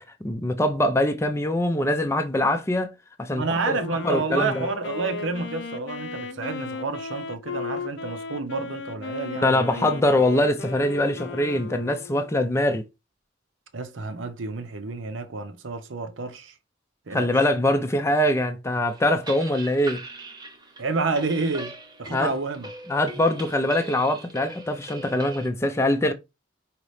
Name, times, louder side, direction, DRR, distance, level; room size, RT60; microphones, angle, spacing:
voice 1, 0.0-2.9 3.2-3.8 4.0-4.6 9.4-12.8 17.1-20.0 22.1-22.3 22.9-26.1, left 1 dB, 15° left, 0.4 m, -23 dB
voice 2, 3.3-10.0 13.7-16.5 17.1-17.3 20.8-22.7, right 3 dB, 90° right, 0.7 m, -29 dB
Wind instrument woodwind instrument, 3.8-12.4, left 4 dB, 75° left, 0.6 m, -35 dB
sound 1, 18.9-25.5, right 2 dB, 20° right, 0.7 m, -40 dB
5.1 x 2.8 x 3.2 m
head